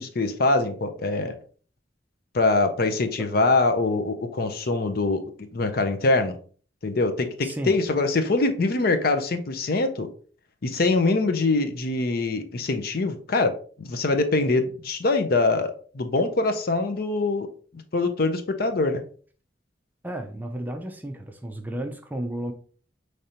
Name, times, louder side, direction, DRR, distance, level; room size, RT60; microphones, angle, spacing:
voice 1, 0.0-1.4 2.3-5.2 5.5-6.4 6.8-10.1 10.6-13.5 13.8-17.5 17.9-19.0, left 3 dB, 55° left, 7 dB, 0.6 m, -23 dB
voice 2, 7.4-7.8 20.0-22.5, right 1 dB, 10° right, 5 dB, 0.5 m, -33 dB
5.2 x 3.2 x 2.8 m, 0.43 s
head